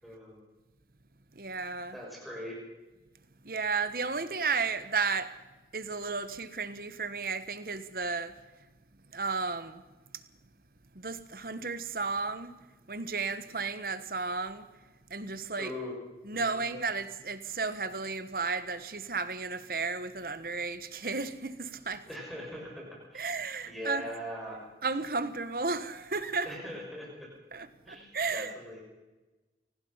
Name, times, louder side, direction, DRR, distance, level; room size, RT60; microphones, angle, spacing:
voice 1, 0.0-0.4 1.9-2.6 15.5-15.9 16.3-16.7 22.1-23.3 23.6-24.6 26.4-27.3 27.8-28.8, left 1 dB, ahead, -3 dB, 6.4 m, -41 dB
voice 2, 1.4-2.0 3.4-5.3 5.7-8.3 9.1-9.8 10.9-12.5 12.9-14.6 15.1-15.7 16.3-22.0 23.1-24.1 24.8-26.5 27.5-28.5, right 4 dB, 55° right, 12 dB, 1.3 m, -33 dB
25.5 x 19.0 x 5.7 m, 1.1 s
head